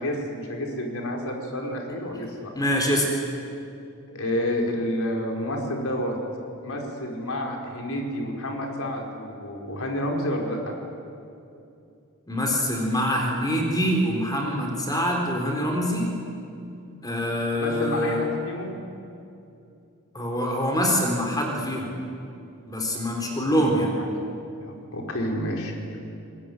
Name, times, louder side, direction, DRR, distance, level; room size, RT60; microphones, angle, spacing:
voice 1, 0.0-2.5 4.1-6.2 6.6-10.7 17.6-18.7 23.2-24.1 24.5-26.0, equal, 65° left, 1 dB, 5.0 m, -30 dB
voice 2, 2.6-3.1 12.3-16.1 17.0-18.3 20.1-21.9 22.7-23.9, equal, 15° left, 1 dB, 4.0 m, -25 dB
28.5 x 20.5 x 9.6 m, 2.7 s
head